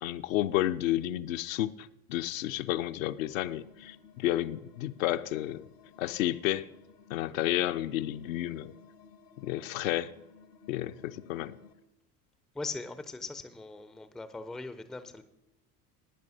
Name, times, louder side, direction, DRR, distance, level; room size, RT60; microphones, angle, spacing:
voice 1, 0.0-5.7 6.0-6.7 7.1-8.7 9.4-10.1 10.7-11.6, left 14 dB, 55° left, 0.6 m, -31 dB
sound 1, 3.2-11.7, left 6 dB, 75° left, 1.2 m, -57 dB
voice 2, 12.5-15.2, left 3 dB, ahead, 0.4 m, -40 dB
15.5 x 10.5 x 2.7 m
figure-of-eight pair, 65°, 48 cm